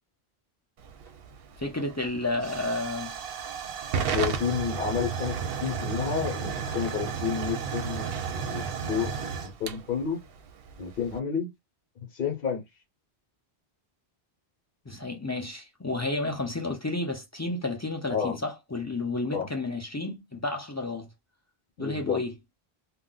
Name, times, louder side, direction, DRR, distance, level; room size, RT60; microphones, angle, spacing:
Hiss / Fire / Tick, 0.8-11.2, right 6 dB, 70° right, 0.7 m, -33 dB
voice 1, 1.6-3.1 14.9-21.1 21.8-22.3, left 2 dB, 25° left, 0.4 m, -31 dB
voice 2, 4.1-10.2 10.8-11.5 12.1-12.6 18.1-18.4 19.3-19.5 21.8-22.2, left 7 dB, 60° left, 0.9 m, -30 dB
2.4 x 2.1 x 3.7 m
omnidirectional pair, 1.1 m